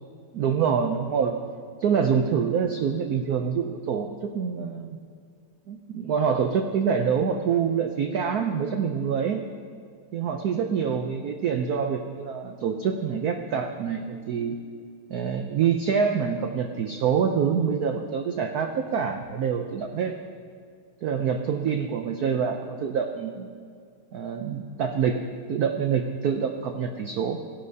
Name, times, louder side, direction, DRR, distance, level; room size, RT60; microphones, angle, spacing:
voice 1, 0.3-1.3 1.8-5.0 5.7-9.4 10.1-14.5 15.1-20.2 21.0-23.5 24.1-25.2 25.5-27.4, right 7 dB, 85° right, 5 dB, 0.8 m, -26 dB
16.5 x 11.0 x 2.7 m, 2.2 s
omnidirectional pair, 2.3 m